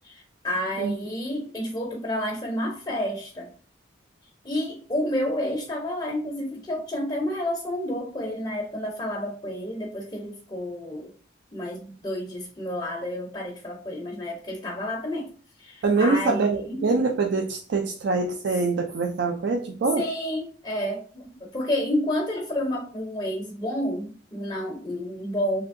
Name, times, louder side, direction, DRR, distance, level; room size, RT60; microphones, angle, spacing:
voice 1, 0.0-3.5 4.4-11.1 11.5-15.3 15.6-17.0 19.9-25.7, left 1 dB, 20° left, 0 dB, 0.5 m, -30 dB
voice 2, 15.8-20.0, right 3 dB, 65° right, 4 dB, 0.4 m, -24 dB
3.3 x 2.6 x 2.5 m, 0.41 s
head